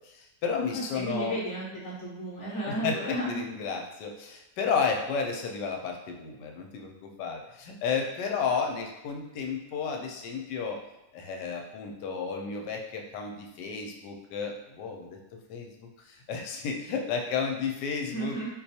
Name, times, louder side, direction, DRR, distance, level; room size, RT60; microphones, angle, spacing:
voice 1, 0.0-1.4 2.6-10.8 11.1-15.2 15.5-18.5, left 5 dB, 85° left, 2 dB, 1.2 m, -32 dB
voice 2, 0.7-3.4 18.1-18.5, right 1 dB, 55° left, -6 dB, 0.9 m, -33 dB
4.3 x 2.3 x 2.7 m, 0.96 s
omnidirectional pair, 1.8 m